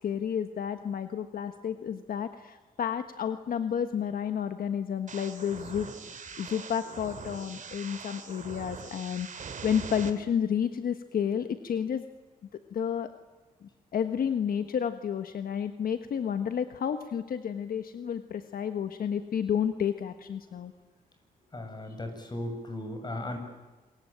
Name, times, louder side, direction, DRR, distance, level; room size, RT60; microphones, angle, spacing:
voice 1, 0.0-5.9 6.4-12.0 12.7-13.1 13.6-20.7, left 8 dB, 70° left, 9 dB, 1.4 m, -31 dB
sound 1, 5.1-10.1, right 6 dB, 55° right, 3.2 m, -42 dB
voice 2, 21.5-23.4, left 1 dB, 30° left, 6 dB, 7.7 m, -36 dB
26.5 x 23.0 x 9.1 m, 1.2 s
cardioid pair, 90°, 16 cm